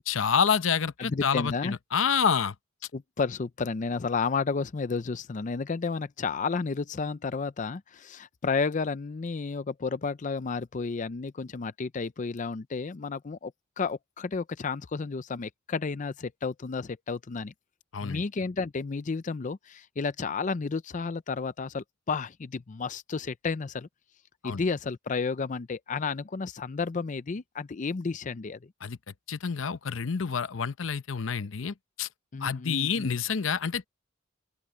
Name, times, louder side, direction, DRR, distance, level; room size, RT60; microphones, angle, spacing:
voice 1, 0.0-2.5 17.9-18.2 24.4-24.6 28.8-29.0 29.3-32.1 32.4-33.9, left 6 dB, 85° left, 0.7 m, -28 dB
voice 2, 1.0-1.7 2.9-13.5 13.8-17.5 18.0-23.9 24.4-28.7 32.3-33.2, left 4 dB, 40° left, 0.5 m, -32 dB
open air
head